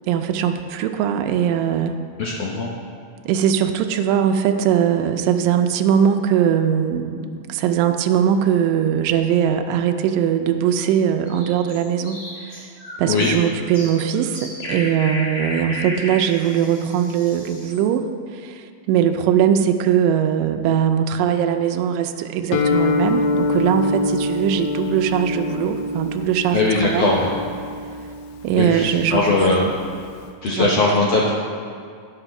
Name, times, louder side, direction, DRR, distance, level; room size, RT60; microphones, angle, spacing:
voice 1, 0.1-2.0 3.3-12.7 13.0-18.1 18.3-27.1 28.4-29.2 29.6-29.7 30.5-30.7, right 9 dB, 85° right, 6 dB, 2.2 m, -20 dB
voice 2, 2.2-2.7 13.1-13.3 26.5-27.3 28.6-29.7 30.4-31.3, left 3 dB, 70° left, -3 dB, 1.6 m, -19 dB
sound 1, 11.2-17.8, left 1 dB, 35° left, 3.0 m, -33 dB
Guitar, 22.5-30.3, left 2 dB, 90° left, 2.3 m, -25 dB
10.5 x 6.0 x 5.9 m, 2.3 s
omnidirectional pair, 3.8 m